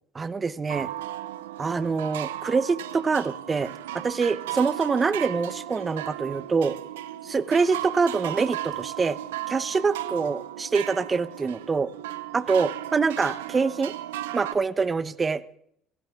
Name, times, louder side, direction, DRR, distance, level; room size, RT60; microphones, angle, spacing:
voice 1, 0.1-0.9 1.6-6.8 7.2-9.2 9.5-11.9 12.3-13.9 14.3-15.4, right 4 dB, 30° right, 15 dB, 0.9 m, -25 dB
sound 1, 0.7-14.5, right 14 dB, 90° right, 0.8 m, -35 dB
18.5 x 15.5 x 3.6 m, 0.68 s
hypercardioid pair, 75°, 0 cm